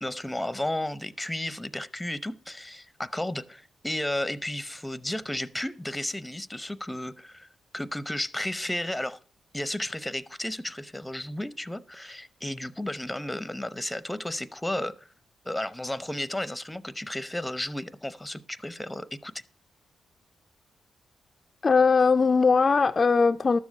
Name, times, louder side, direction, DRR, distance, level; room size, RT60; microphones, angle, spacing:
voice 1, 0.0-7.5 7.7-9.2 9.5-15.1 15.4-19.3, left 1 dB, 10° left, 0.8 m, -33 dB
voice 2, 21.6-23.6, left 4 dB, 45° left, 0.4 m, -20 dB
12.5 x 7.1 x 5.3 m
cardioid pair, 60°, 0 cm